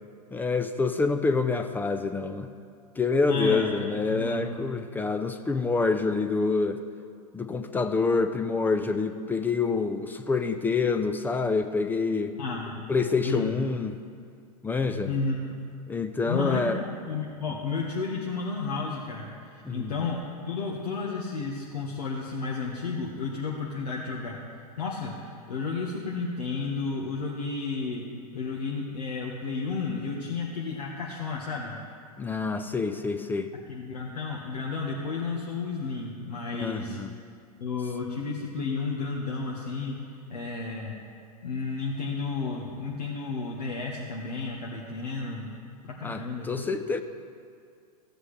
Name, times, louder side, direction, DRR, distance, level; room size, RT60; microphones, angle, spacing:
voice 1, 0.3-2.5 3.0-6.8 7.3-12.3 12.9-13.9 14.6-15.1 15.9-16.8 19.6-19.9 32.2-33.5 36.5-37.1 46.0-47.0, left 4 dB, 10° left, 8 dB, 0.4 m, -27 dB
voice 2, 3.3-3.7 4.1-4.5 12.4-12.8 13.2-13.5 15.0-15.4 16.3-20.2 20.5-28.0 28.3-31.7 33.7-37.0 37.6-40.0 40.3-40.9 41.4-45.5 45.8-46.6, left 4 dB, 85° left, -3 dB, 1.4 m, -32 dB
15.5 x 8.2 x 3.3 m, 2.2 s
hypercardioid pair, 115°, 20 cm